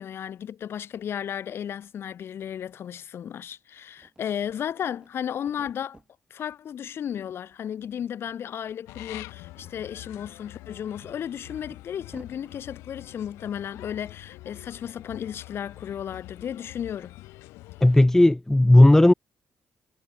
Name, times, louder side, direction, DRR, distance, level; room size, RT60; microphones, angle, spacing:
voice 1, 0.0-6.0 6.3-17.1, left 9 dB, 65° left, 2.0 m, -34 dB
sound 1, 2.1-2.2 2.4-3.6 3.9-6.1 6.5-7.2 7.5-8.4 8.6-8.8 9.3-12.6, right 2 dB, 25° right, 6.2 m, -54 dB
sound 2, 8.9-18.1, left 19 dB, 90° left, 1.5 m, -45 dB
voice 2, 17.8-19.1, left 1 dB, 10° left, 0.4 m, -15 dB
supercardioid pair, 50°, 4 cm